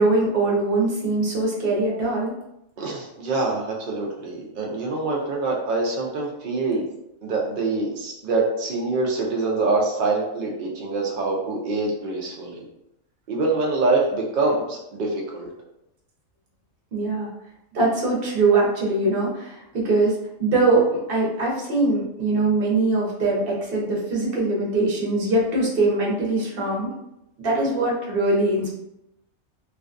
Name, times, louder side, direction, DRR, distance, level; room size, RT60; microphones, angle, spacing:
voice 1, 0.0-2.3 16.9-17.3 17.7-26.9 27.4-28.7, right 2 dB, 50° right, -4 dB, 0.8 m, -22 dB
voice 2, 2.8-6.9 7.2-12.6 13.3-15.5, right 3 dB, 75° right, -2 dB, 0.4 m, -25 dB
2.5 x 2.2 x 2.4 m, 0.84 s
omnidirectional pair, 1.4 m